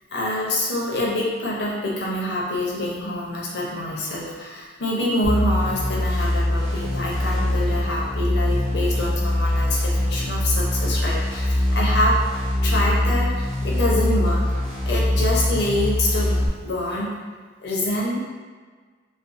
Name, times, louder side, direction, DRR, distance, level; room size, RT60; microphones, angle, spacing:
voice 1, 0.1-12.2 12.6-14.5 14.9-17.1 17.6-18.2, left 1 dB, 60° left, -4 dB, 0.6 m, -26 dB
sound 1, 5.2-16.5, left 1 dB, 5° left, 0.6 m, -22 dB
2.4 x 2.3 x 2.5 m, 1.5 s
head